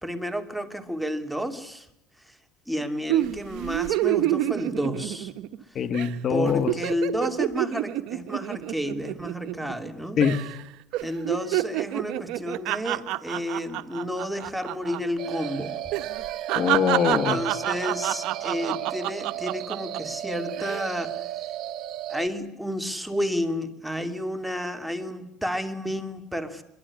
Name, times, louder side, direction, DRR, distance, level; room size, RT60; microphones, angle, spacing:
voice 1, 0.0-1.9 2.3-2.4 2.7-5.3 6.3-10.2 11.0-15.8 17.1-21.1 22.1-26.6, equal, ahead, 6 dB, 2.7 m, -31 dB
sound 1, 3.1-5.6 5.9-6.1 6.4-9.9 10.2-10.6 10.9-15.0 15.3-15.4 15.9-20.0 20.5-20.9, right 16 dB, 65° right, 1.3 m, -28 dB
voice 2, 5.8-6.7 10.2-10.4 16.6-17.4, left 7 dB, 40° left, 12 dB, 2.0 m, -23 dB
sound 2, 15.2-22.3, right 12 dB, 50° right, 2.3 m, -34 dB
24.5 x 23.0 x 9.8 m, 0.78 s
cardioid pair, 130°, 0 cm